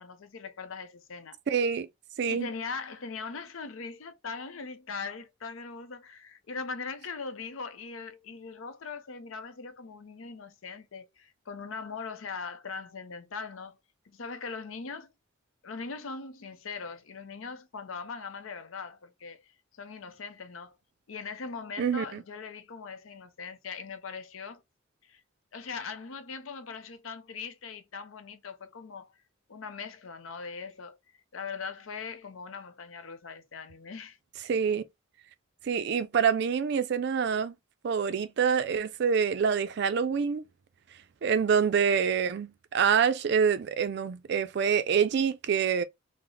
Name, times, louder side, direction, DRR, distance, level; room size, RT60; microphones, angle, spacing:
voice 1, 0.0-1.4 2.3-13.8 14.1-15.1 15.6-19.5 19.8-20.8 21.1-24.6 25.0-25.2 25.5-29.1 29.5-31.0 31.3-34.2, left 5 dB, 80° left, 0.6 m, -40 dB
voice 2, 1.5-1.9 2.2-2.5 21.8-22.2 34.5-34.8 35.7-37.5 37.8-40.4 41.2-45.8, right 6 dB, 55° right, 0.3 m, -26 dB
3.8 x 2.0 x 3.2 m
head